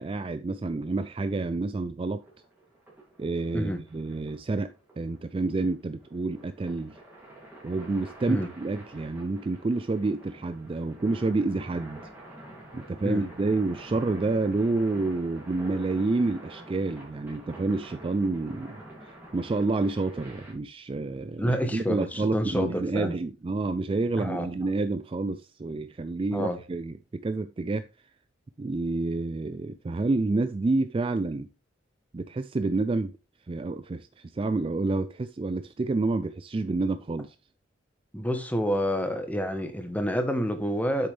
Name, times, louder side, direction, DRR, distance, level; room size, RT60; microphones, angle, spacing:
voice 1, 0.0-2.2 3.2-4.7 5.0-7.0 7.6-12.0 12.7-18.8 19.3-27.9 28.6-31.5 32.1-33.1 33.5-37.4, right 3 dB, 25° right, 0.3 m, -29 dB
sound 1, 2.2-20.5, right 1 dB, 10° right, 2.6 m, -48 dB
voice 2, 21.4-23.1 24.2-24.5 26.3-26.6 38.1-41.1, equal, 10° left, 1.1 m, -28 dB
8.1 x 6.7 x 3.3 m
head